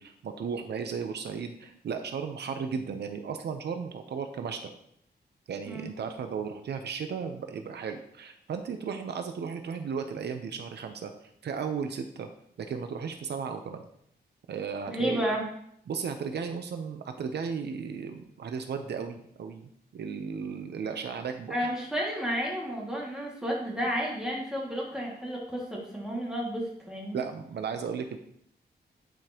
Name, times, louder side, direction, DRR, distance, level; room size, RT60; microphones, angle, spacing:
voice 1, 0.0-4.7 5.5-11.1 11.4-12.3 12.6-13.8 14.5-15.2 15.9-21.7 27.1-28.2, right 6 dB, 80° right, 6 dB, 0.7 m, -35 dB
voice 2, 14.9-15.4 21.5-27.2, equal, 5° right, -4 dB, 2.1 m, -32 dB
11.0 x 5.1 x 3.0 m, 0.69 s
wide cardioid pair, 170°, 17 cm